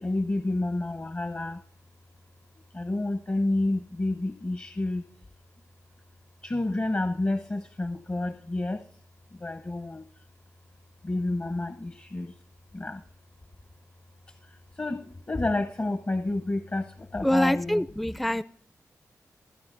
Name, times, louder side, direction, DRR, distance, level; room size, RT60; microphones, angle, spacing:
voice 1, 0.0-1.6 2.8-5.0 6.4-8.8 9.4-10.0 11.1-12.3 12.8-13.0 14.8-15.0 15.3-16.8 17.1-17.8, left 2 dB, 35° left, 0.8 m, -29 dB
voice 2, 17.2-18.4, left 1 dB, ahead, 0.4 m, -25 dB
28.5 x 9.7 x 2.6 m
cardioid pair, 45°, 6 cm